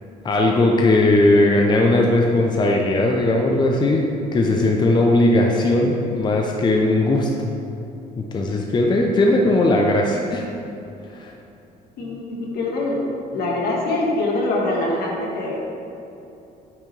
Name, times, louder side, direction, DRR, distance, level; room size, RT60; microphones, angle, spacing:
voice 1, 0.2-4.0 4.3-7.5 8.2-10.4 11.2-11.3, left 2 dB, 25° left, 1 dB, 0.6 m, -18 dB
voice 2, 12.0-13.0 13.3-15.6, left 2 dB, 70° left, -3 dB, 1.7 m, -24 dB
8.5 x 6.1 x 3.3 m, 2.8 s
cardioid pair, 110°, 17 cm